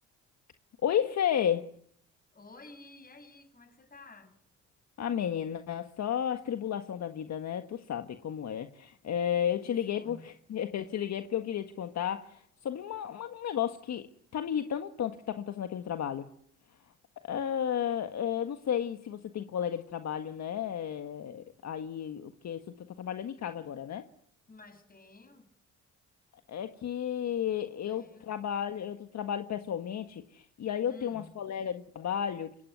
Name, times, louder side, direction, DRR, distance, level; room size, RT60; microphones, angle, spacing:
voice 1, 0.8-1.7 5.0-14.1 14.3-16.3 17.2-24.1 26.5-32.6, left 9 dB, 60° left, 8 dB, 1.7 m, -33 dB
voice 2, 2.3-4.3 9.4-10.4 24.5-25.5 27.9-28.4 30.8-31.4, left 3 dB, 30° left, 8 dB, 7.4 m, -53 dB
26.5 x 23.5 x 9.6 m, 0.65 s
cardioid pair, 90°, 30 cm